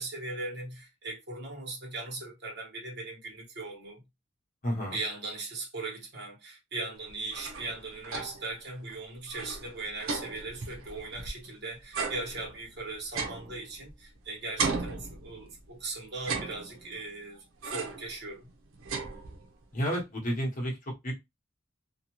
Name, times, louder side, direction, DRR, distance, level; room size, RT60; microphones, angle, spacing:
voice 1, 0.0-4.0 4.9-18.5, right 3 dB, 55° right, 1.3 m, -39 dB
voice 2, 4.6-5.0 19.7-20.8 21.0-21.1, equal, 40° left, 1.0 m, -30 dB
sound 1, 7.1-8.6 8.9-9.0 9.3-11.5 11.9-14.2 14.6-15.7 16.1-17.1 17.6-18.1 18.5-19.6, right 4 dB, 90° right, 0.7 m, -36 dB
2.7 x 2.3 x 3.0 m
head